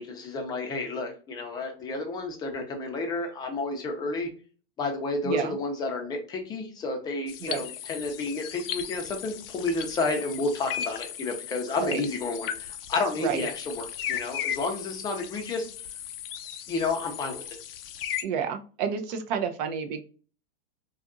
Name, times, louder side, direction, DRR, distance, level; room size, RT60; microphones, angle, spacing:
voice 1, 0.0-4.3 4.8-15.7 16.7-17.4, left 3 dB, 15° left, 2 dB, 0.5 m, -31 dB
voice 2, 5.2-5.6 7.4-7.6 11.8-12.1 13.2-13.5 18.2-20.0, right 7 dB, 45° right, 7 dB, 0.5 m, -30 dB
sound 1, 7.3-18.2, left 10 dB, 70° left, 0.5 m, -36 dB
2.7 x 2.5 x 2.3 m, 0.38 s
supercardioid pair, 150°, 29 cm